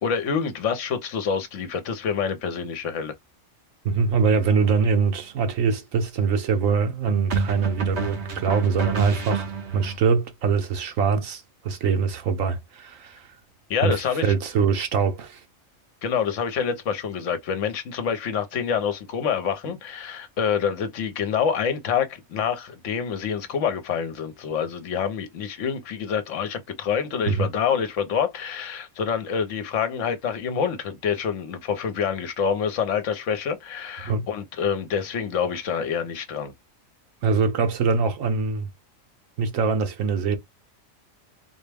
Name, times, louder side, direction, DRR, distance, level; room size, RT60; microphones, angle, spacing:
voice 1, 0.0-3.1 13.7-14.3 16.0-36.5, left 7 dB, 65° left, 1.1 m, -27 dB
voice 2, 3.8-13.3 13.8-15.4 27.3-27.5 34.0-34.3 37.2-38.7 39.4-40.4, right 5 dB, 75° right, 1.2 m, -23 dB
sound 1, 4.6-4.9 7.3-10.0, right 5 dB, 55° right, 1.1 m, -27 dB
4.0 x 2.1 x 3.3 m
omnidirectional pair, 1.4 m